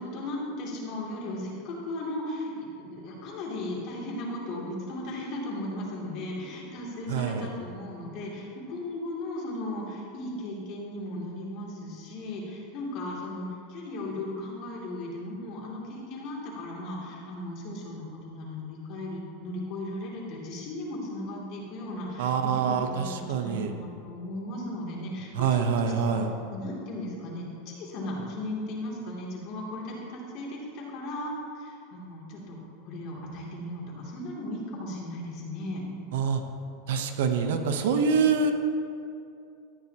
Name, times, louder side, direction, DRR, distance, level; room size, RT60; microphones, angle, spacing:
voice 1, 0.0-26.2 26.5-32.6 32.8-35.8, left 1 dB, 45° left, -4 dB, 2.6 m, -36 dB
voice 2, 7.1-7.5 22.2-23.7 25.3-26.3 36.1-36.4 36.9-38.5, right 6 dB, 75° right, 6 dB, 0.8 m, -25 dB
13.5 x 9.4 x 2.9 m, 2.5 s
supercardioid pair, 150°, 0 cm